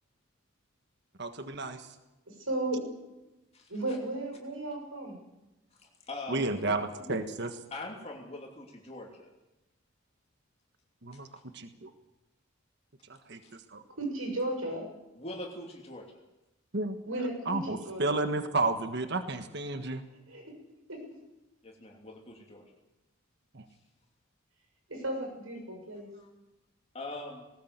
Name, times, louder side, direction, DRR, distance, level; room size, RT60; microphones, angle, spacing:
voice 1, 1.2-1.9 6.3-7.5 11.0-11.3 11.5-11.9 13.1-13.8 16.7-17.0 17.5-20.0 23.5-23.6, right 2 dB, 55° right, 8 dB, 1.5 m, -32 dB
voice 2, 2.3-3.1 3.7-5.2 14.0-14.9 17.1-17.6 17.9-18.3 20.3-20.4 20.9-21.0 24.9-26.1, right 1 dB, 85° right, 3 dB, 6.6 m, -35 dB
voice 3, 3.5-4.0 5.8-7.2 7.7-9.3 11.1-11.2 13.4-13.6 15.1-16.1 21.6-22.8 26.1-26.3 26.9-27.5, left 2 dB, 30° left, 0 dB, 2.9 m, -43 dB
19.0 x 19.0 x 8.2 m, 0.99 s
head